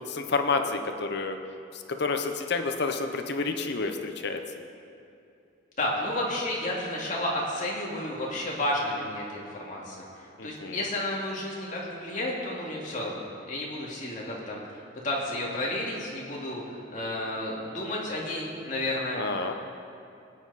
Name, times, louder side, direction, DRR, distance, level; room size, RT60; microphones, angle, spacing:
voice 1, 0.0-1.4 1.7-4.4 10.4-10.8 19.1-19.5, left 4 dB, 55° left, 6 dB, 0.8 m, -29 dB
voice 2, 5.8-19.2, left 1 dB, 40° left, -4 dB, 2.4 m, -32 dB
18.5 x 9.5 x 4.2 m, 2.6 s
head